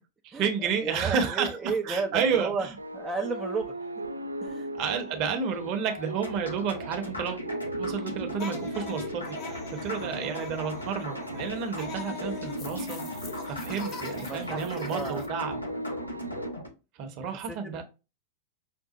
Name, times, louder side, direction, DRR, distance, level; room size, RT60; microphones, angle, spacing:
voice 1, 0.2-2.8 4.7-7.4 7.8-15.6 17.0-17.8, right 6 dB, 40° right, 0.8 m, -31 dB
voice 2, 0.8-2.7 2.9-3.7 4.4-4.7 10.0-10.5 14.2-14.6 14.9-15.3 17.5-17.8, right 4 dB, 10° right, 0.5 m, -33 dB
sound 1, 2.8-16.5, right 1 dB, 80° right, 0.4 m, -39 dB
sound 2, 6.2-16.7, equal, 80° left, 0.8 m, -37 dB
sound 3, 8.4-15.3, left 5 dB, 35° left, 0.9 m, -43 dB
5.8 x 2.1 x 2.8 m
figure-of-eight pair, 90°, 0 cm